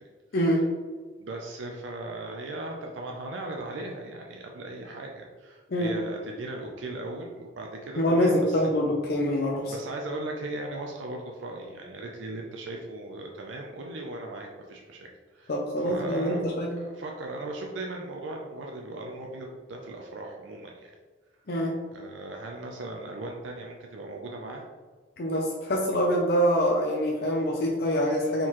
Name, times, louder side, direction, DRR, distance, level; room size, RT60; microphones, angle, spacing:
voice 1, 1.2-8.7 9.7-15.5 15.9-16.5 16.8-20.9 21.9-24.6, right 2 dB, 70° right, 0 dB, 0.5 m, -38 dB
voice 2, 8.0-9.7 15.5-16.7 21.5-21.7 25.2-28.5, equal, 50° left, -1 dB, 0.5 m, -25 dB
4.4 x 3.8 x 3.0 m, 1.5 s
head